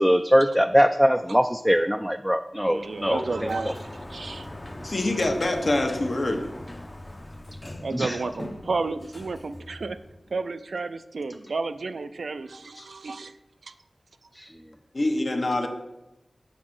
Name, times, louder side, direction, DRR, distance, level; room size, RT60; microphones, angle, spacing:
voice 1, 0.0-3.7 7.9-8.2 14.4-14.5, equal, ahead, 7 dB, 0.3 m, -22 dB
Sliding door, 2.6-10.4, left 1 dB, 25° left, 0.7 m, -41 dB
voice 2, 2.6-4.5 7.8-10.0 10.3-13.4 13.6-13.7, right 3 dB, 85° right, 11 dB, 0.4 m, -32 dB
voice 3, 4.8-6.5 12.8-12.9 14.9-15.7, left 2 dB, 55° left, 4 dB, 1.0 m, -25 dB
7.5 x 4.1 x 6.0 m, 0.91 s
wide cardioid pair, 60°, 0 cm